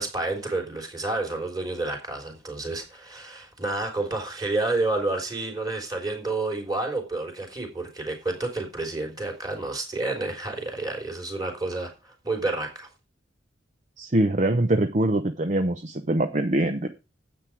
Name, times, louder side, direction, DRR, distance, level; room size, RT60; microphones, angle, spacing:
voice 1, 0.0-12.9, right 2 dB, 20° right, 3.6 m, -30 dB
voice 2, 14.0-16.9, right 1 dB, 40° right, 0.8 m, -23 dB
9.6 x 8.5 x 4.7 m
head